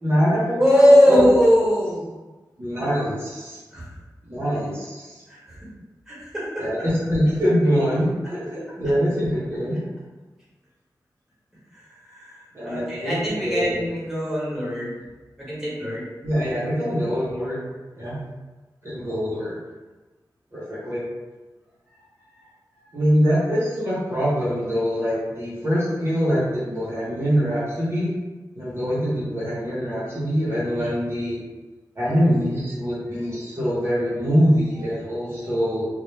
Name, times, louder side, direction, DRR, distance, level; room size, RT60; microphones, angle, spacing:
voice 1, 0.0-1.2 2.6-3.6 4.2-5.2 6.6-9.8 12.5-13.8 16.2-17.6 17.9-18.2 18.8-19.6 20.5-21.0 22.9-28.1 28.5-31.4 32.0-35.9, equal, 35° right, -9 dB, 0.7 m, -24 dB
voice 2, 0.6-2.0 3.7-3.8 5.3-5.6 6.1-6.7 11.7-15.0 15.5-16.0 30.7-30.8 35.5-35.6, equal, 5° right, -9 dB, 1.0 m, -20 dB
2.1 x 2.0 x 3.1 m, 1.2 s
wide cardioid pair, 115°, 7 cm